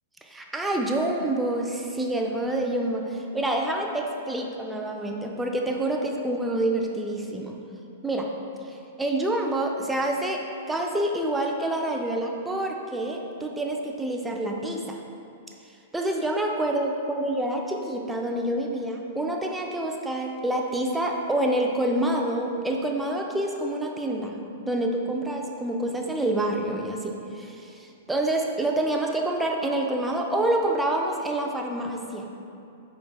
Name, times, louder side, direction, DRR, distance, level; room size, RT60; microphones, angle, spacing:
voice 1, 0.2-7.6 8.0-8.3 8.7-10.4 10.7-15.0 15.9-24.4 24.7-32.3, right 1 dB, 5° right, 1 dB, 0.3 m, -27 dB
5.0 x 3.1 x 2.2 m, 2.6 s
figure-of-eight pair, 105°, 0 cm